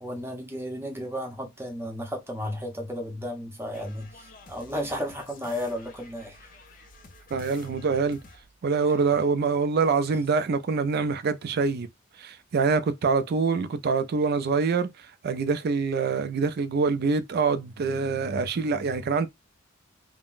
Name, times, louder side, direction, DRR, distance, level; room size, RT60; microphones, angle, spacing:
voice 1, 0.0-6.4, equal, 10° right, 0.7 m, -33 dB
sound 1, 3.7-8.6, left 3 dB, 45° left, 0.6 m, -51 dB
voice 2, 7.3-8.2 8.6-11.9 12.2-19.3, right 4 dB, 50° right, 0.4 m, -25 dB
3.7 x 2.1 x 2.4 m
head